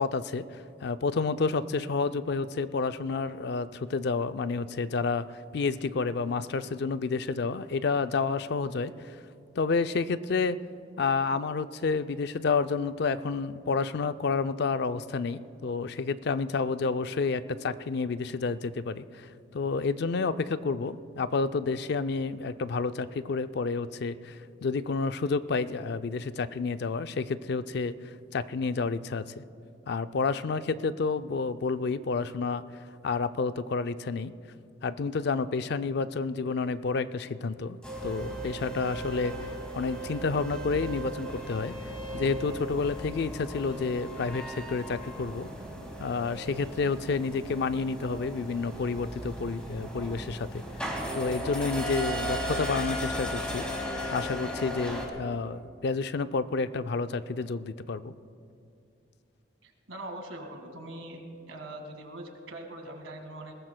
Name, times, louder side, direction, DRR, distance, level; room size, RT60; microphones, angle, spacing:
voice 1, 0.0-5.3 5.5-9.2 9.6-10.6 11.0-27.9 28.3-29.4 29.9-32.6 33.0-34.3 34.8-39.4 39.7-41.7 42.1-45.5 46.0-50.6 51.1-53.7 54.1-58.1, left 4 dB, 55° left, 12 dB, 0.4 m, -30 dB
sound 1, 37.8-55.1, equal, 5° left, 2.1 m, -36 dB
voice 2, 59.6-61.2 61.5-63.5, right 1 dB, 90° right, 4 dB, 1.8 m, -42 dB
21.5 x 18.0 x 2.2 m, 2.5 s
head